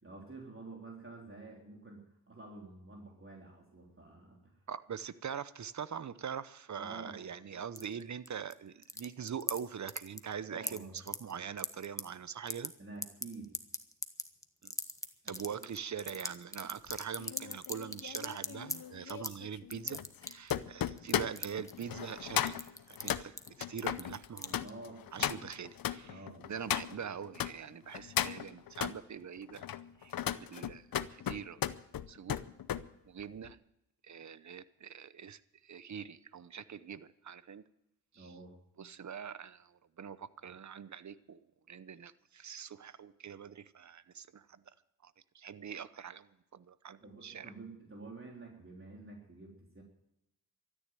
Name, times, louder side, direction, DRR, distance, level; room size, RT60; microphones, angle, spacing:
voice 1, 0.0-4.6 6.8-7.2 10.4-11.0 12.8-13.6 15.2-15.6 24.6-25.0 26.0-26.5 38.1-38.6 47.0-49.8, right 3 dB, 35° right, -1 dB, 3.6 m, -49 dB
voice 2, 4.7-12.7 14.6-14.7 15.2-22.6 22.9-24.7 25.1-29.7 30.0-31.6 32.1-32.4 33.1-33.6 34.0-37.6 38.1-38.3 38.8-41.4 41.7-44.6 45.0-47.5, right 7 dB, 55° right, 16 dB, 0.8 m, -43 dB
sound 1, 7.8-8.5 8.8-9.6 9.9-10.3 10.6-12.0 12.3-12.7 13.0-18.8 19.1-19.4 19.7-20.6 21.0-22.2 22.5-23.1 23.4-23.5 23.8-24.7, left 1 dB, 10° left, 1.3 m, -38 dB
sound 2, 16.9-27.5 27.9-29.0 29.5-32.9 33.2-33.5, left 10 dB, 80° left, 0.7 m, -37 dB
13.5 x 10.0 x 9.1 m, 0.85 s
cardioid pair, 60°, 35 cm